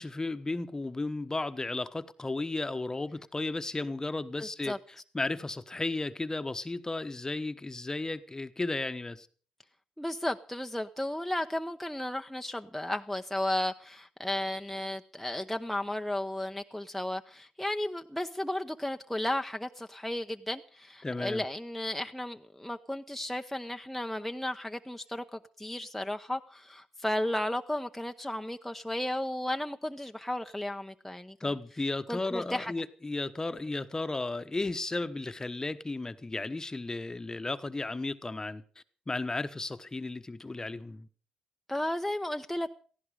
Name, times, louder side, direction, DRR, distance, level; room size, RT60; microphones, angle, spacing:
voice 1, 0.0-4.7 5.1-9.3 21.0-21.4 31.4-38.6 39.1-41.1, left 2 dB, 25° left, 1.1 m, -34 dB
voice 2, 4.4-4.8 10.0-31.4 32.1-32.7 41.7-42.7, left 1 dB, 5° left, 0.8 m, -34 dB
17.0 x 15.0 x 5.0 m
supercardioid pair, 60°, 3 cm